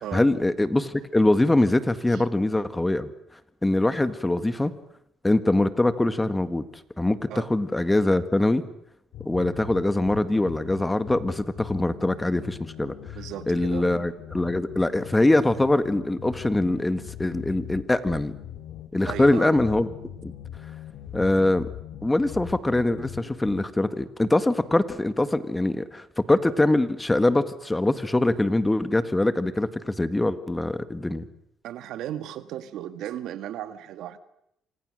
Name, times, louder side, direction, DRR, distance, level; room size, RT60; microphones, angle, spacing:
voice 1, 0.1-3.1 3.6-4.7 5.2-6.7 7.0-8.6 9.3-12.9 13.5-18.3 18.9-19.9 20.2-20.3 21.1-21.7 22.0-31.3, left 2 dB, 15° left, 11 dB, 1.7 m, -23 dB
sound 1, 9.1-23.6, left 11 dB, 80° left, 2.0 m, -41 dB
voice 2, 13.1-13.9 19.1-19.5 31.6-34.2, right 11 dB, 80° right, 11 dB, 1.6 m, -35 dB
28.0 x 26.0 x 6.5 m, 0.76 s
cardioid pair, 90°, 0 cm